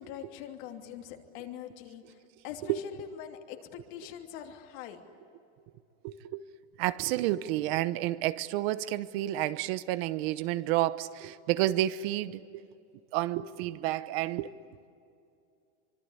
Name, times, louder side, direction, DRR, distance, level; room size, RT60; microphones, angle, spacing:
voice 1, 0.0-5.0, left 9 dB, 60° left, 3.0 m, -43 dB
voice 2, 6.0-6.4 6.8-12.6 13.1-14.5, right 15 dB, 60° right, 1.0 m, -30 dB
25.0 x 23.0 x 9.8 m
supercardioid pair, 150°, 34 cm